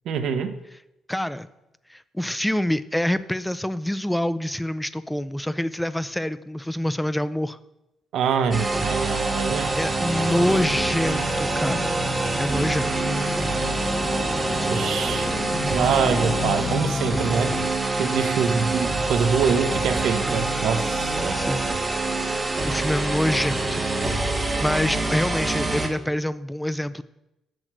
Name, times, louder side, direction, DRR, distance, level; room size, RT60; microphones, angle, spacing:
voice 1, 0.1-0.5 8.1-9.8 10.2-10.6 14.7-15.3 15.7-17.6 18.0-21.4, right 6 dB, 75° right, 9 dB, 0.8 m, -25 dB
voice 2, 1.1-1.5 1.9-7.6 9.8-11.9 12.4-12.9 14.5-14.8 21.3-21.7 22.6-23.8 24.6-27.0, left 1 dB, 5° left, 15 dB, 0.5 m, -26 dB
sound 1, 8.5-25.9, right 2 dB, 25° right, 1.4 m, -25 dB
sound 2, 10.2-17.7, left 4 dB, 40° left, 0.7 m, -32 dB
7.7 x 6.4 x 6.1 m, 0.91 s
cardioid pair, 75°, 0 cm